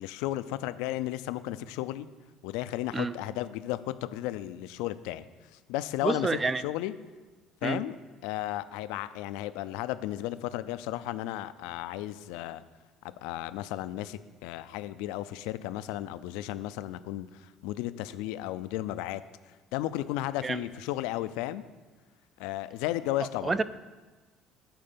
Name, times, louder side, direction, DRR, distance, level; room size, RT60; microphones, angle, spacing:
voice 1, 0.0-2.1 2.4-5.2 5.7-6.3 6.6-6.9 7.6-8.0 8.2-12.6 13.0-19.2 19.7-21.6 22.4-23.6, left 14 dB, 90° left, 14 dB, 0.4 m, -34 dB
voice 2, 6.0-6.6 7.6-7.8 20.4-20.6 23.4-23.6, right 3 dB, 20° right, 14 dB, 0.4 m, -28 dB
9.2 x 4.4 x 6.8 m, 1.3 s
cardioid pair, 115°, 0 cm